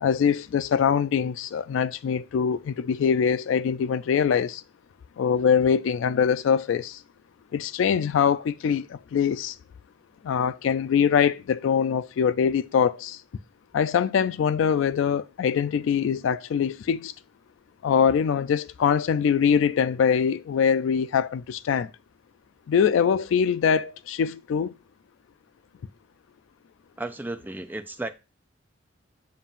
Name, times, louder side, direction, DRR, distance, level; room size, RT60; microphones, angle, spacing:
voice 1, 0.0-4.6 5.2-7.0 7.5-9.6 10.2-13.2 13.7-17.1 17.8-21.9 22.7-24.7, left 7 dB, 75° left, 0.3 m, -23 dB
voice 2, 27.0-28.1, right 2 dB, 10° right, 0.4 m, -33 dB
7.2 x 2.5 x 5.5 m
head